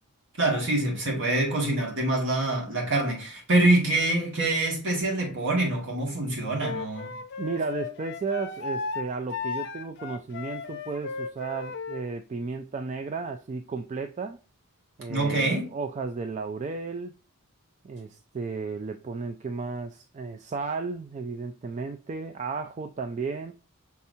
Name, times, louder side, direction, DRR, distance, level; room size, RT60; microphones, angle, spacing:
voice 1, 0.4-7.2 15.1-15.7, right 2 dB, 55° right, 2.0 m, -25 dB
Wind instrument woodwind instrument, 6.6-12.1, left 5 dB, 50° left, 0.6 m, -35 dB
voice 2, 7.4-14.4 15.0-17.1 17.8-23.5, right 4 dB, 30° right, 0.3 m, -34 dB
5.6 x 3.6 x 2.7 m
head